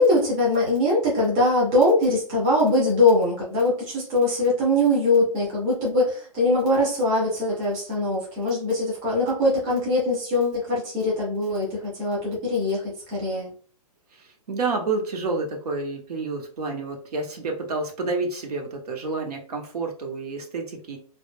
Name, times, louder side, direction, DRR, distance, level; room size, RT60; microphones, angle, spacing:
voice 1, 0.0-13.5, left 1 dB, 10° right, -5 dB, 0.3 m, -22 dB
voice 2, 14.1-21.0, right 3 dB, 80° right, 2 dB, 0.9 m, -29 dB
2.1 x 2.1 x 3.1 m, 0.42 s
hypercardioid pair, 175°, 20 cm